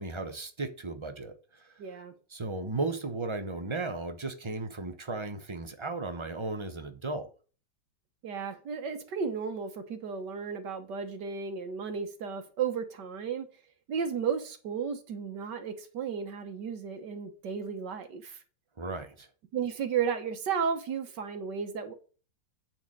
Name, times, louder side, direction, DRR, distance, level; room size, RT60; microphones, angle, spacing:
voice 1, 0.0-1.8 2.3-7.3 18.8-19.3, right 3 dB, 30° right, 0.5 m, -35 dB
voice 2, 1.8-2.1 8.2-13.5 13.9-18.4 19.5-21.9, right 6 dB, 70° right, 1.7 m, -34 dB
9.1 x 4.3 x 6.4 m
omnidirectional pair, 2.0 m